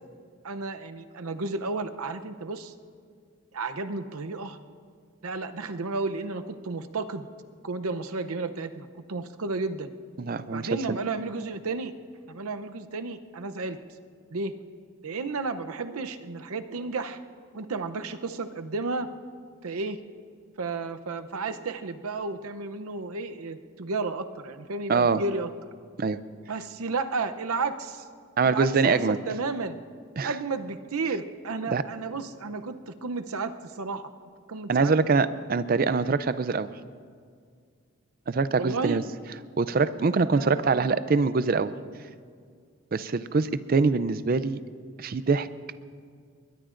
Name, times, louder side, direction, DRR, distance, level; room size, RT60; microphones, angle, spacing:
voice 1, 0.4-2.7 3.5-4.6 5.2-7.3 7.6-9.9 10.5-11.9 12.3-13.8 14.3-14.5 15.0-17.2 17.5-19.1 19.6-20.0 20.6-25.5 26.5-28.0 28.4-29.8 30.2-34.0 34.5-34.9 35.8-35.9 38.6-39.0 40.3-41.0, right 3 dB, 85° right, 9 dB, 0.7 m, -32 dB
voice 2, 10.2-11.0 24.9-25.2 26.0-26.2 28.4-29.2 30.2-30.3 31.7-31.8 34.7-36.7 38.3-39.0 39.6-41.7 42.9-44.6 45.0-45.5, right 4 dB, 40° right, 14 dB, 0.4 m, -24 dB
21.5 x 21.0 x 2.6 m, 2.1 s
head